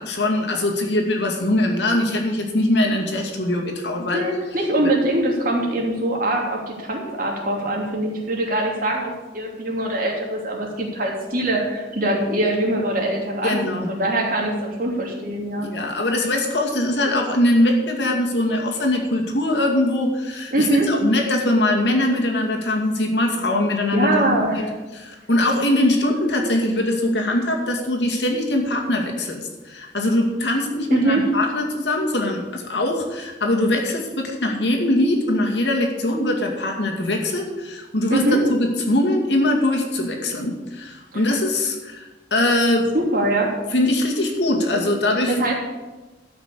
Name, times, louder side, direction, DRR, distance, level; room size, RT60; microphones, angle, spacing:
voice 1, 0.0-4.2 4.8-4.9 13.4-13.9 15.6-24.6 24.9-42.9 43.7-45.3, left 1 dB, 85° left, 1 dB, 2.3 m, -22 dB
voice 2, 4.1-15.7 20.5-20.9 23.9-24.7 30.9-31.3 38.1-38.4 41.1-41.2 42.9-43.5 45.3-45.5, right 1 dB, 50° right, -1 dB, 2.9 m, -23 dB
12.5 x 6.0 x 8.4 m, 1.2 s
head